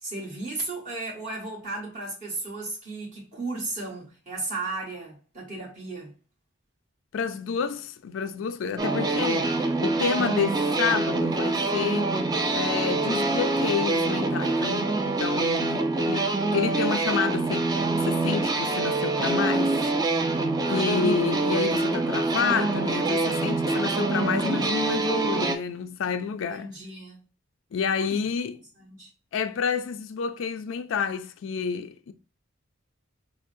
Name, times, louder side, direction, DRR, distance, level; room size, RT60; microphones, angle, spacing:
voice 1, 0.0-6.1 15.7-15.9 20.6-21.1 26.5-27.2 28.0-28.2 28.8-29.1, right 3 dB, 40° right, 1.4 m, -35 dB
voice 2, 7.1-12.1 12.5-19.8 20.3-26.7 27.7-28.6 29.3-32.1, left 6 dB, 80° left, 0.4 m, -29 dB
sound 1, 8.8-25.6, right 3 dB, 20° right, 0.4 m, -25 dB
6.1 x 2.0 x 2.6 m
head